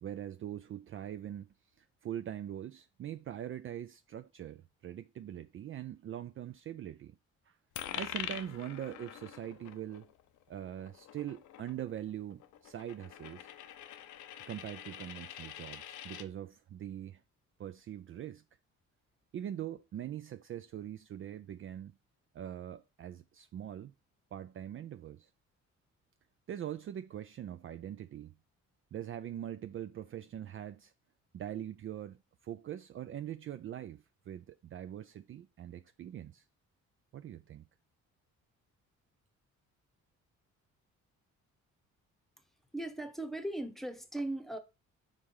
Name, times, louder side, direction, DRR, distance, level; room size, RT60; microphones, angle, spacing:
voice 1, 0.0-1.5 1.8-7.2 7.5-7.6 7.9-10.1 10.5-13.5 14.5-17.2 17.6-18.4 19.3-21.9 22.3-23.9 24.3-25.3 26.5-28.4 28.9-30.9 31.3-32.2 32.4-36.4 37.1-37.7, right 10 dB, 45° right, 0.4 m, -42 dB
Coin (dropping), 7.8-16.3, left 11 dB, 80° left, 0.7 m, -45 dB
voice 2, 42.7-44.6, right 1 dB, ahead, 0.9 m, -38 dB
4.8 x 3.6 x 5.5 m
cardioid pair, 90°, 30 cm